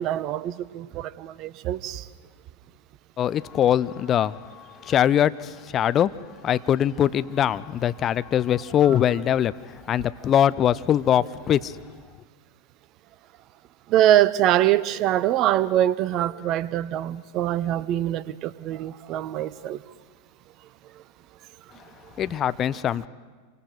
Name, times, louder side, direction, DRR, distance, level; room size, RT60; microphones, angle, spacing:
voice 1, 0.0-2.1 13.9-19.8, right 12 dB, 35° right, 0.7 m, -23 dB
voice 2, 3.2-6.1 6.4-9.5 9.9-11.7 22.2-23.1, left 10 dB, 30° left, 0.5 m, -22 dB
27.5 x 24.5 x 5.0 m
figure-of-eight pair, 90°, 0 cm